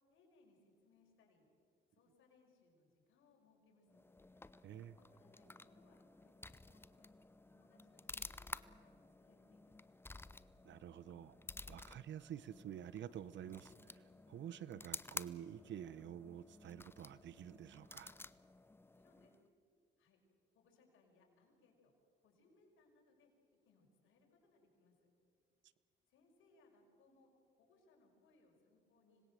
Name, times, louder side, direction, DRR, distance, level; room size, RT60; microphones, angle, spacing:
voice 1, 0.1-1.4 1.9-4.0 5.0-7.1 7.5-9.7 18.8-19.3 20.0-20.2 20.5-21.9 22.2-23.3 23.6-25.0 26.1-27.3 27.6-29.2, left 3 dB, 85° left, 1 dB, 5.9 m, -71 dB
sound 1, 3.9-19.5, left 2 dB, 10° left, 0.7 m, -53 dB
voice 2, 4.6-5.0 10.6-11.4 11.7-18.2, right 10 dB, 65° right, 18 dB, 0.9 m, -49 dB
26.0 x 20.0 x 7.7 m, 2.4 s
cardioid pair, 90°, 20 cm